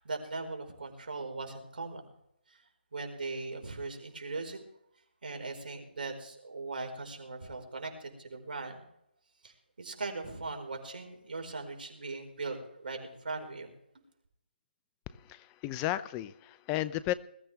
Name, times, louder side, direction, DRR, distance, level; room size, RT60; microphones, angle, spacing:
voice 1, 0.0-2.1 2.5-2.6 2.9-4.6 5.2-8.8 9.4-13.7, right 3 dB, 60° right, 4 dB, 4.7 m, -39 dB
voice 2, 15.1-17.1, left 15 dB, 15° left, 16 dB, 0.4 m, -34 dB
21.0 x 13.5 x 3.4 m, 0.77 s
figure-of-eight pair, 160°, 6 cm